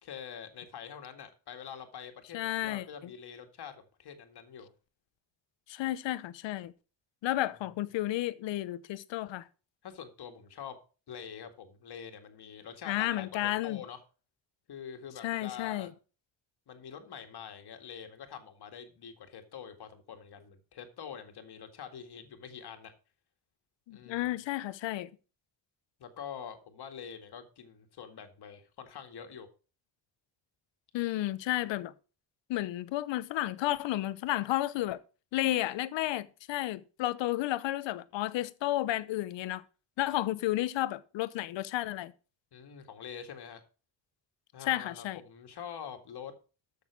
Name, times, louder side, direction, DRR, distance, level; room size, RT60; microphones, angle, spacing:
voice 1, 0.0-4.7 7.7-7.8 9.8-10.8 11.1-14.0 14.7-15.9 16.7-22.9 23.9-24.3 26.0-29.5 42.5-43.6 44.5-46.3, left 8 dB, 60° left, 2.1 m, -45 dB
voice 2, 2.3-2.8 5.7-6.7 7.2-9.5 12.9-13.8 15.2-15.9 23.9-25.1 30.9-31.9 32.5-35.0 35.3-39.6 40.0-42.1 44.7-45.2, left 15 dB, 80° left, 0.9 m, -32 dB
13.0 x 6.6 x 4.6 m
cardioid pair, 90°, 43 cm